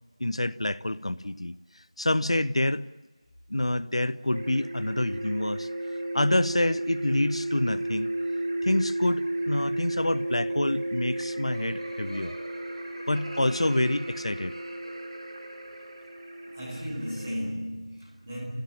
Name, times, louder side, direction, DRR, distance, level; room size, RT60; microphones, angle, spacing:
voice 1, 0.2-2.8 3.5-5.7 6.1-8.1 8.6-12.3 13.1-14.6, left 1 dB, 60° left, 0.7 m, -27 dB
sound 1, 4.3-17.3, right 1 dB, 35° right, 4.0 m, -33 dB
Laughter, 11.1-16.3, right 1 dB, 70° right, 5.2 m, -47 dB
voice 2, 16.5-18.4, equal, 15° right, 5.3 m, -35 dB
27.0 x 16.5 x 8.8 m
figure-of-eight pair, 175°, 3 cm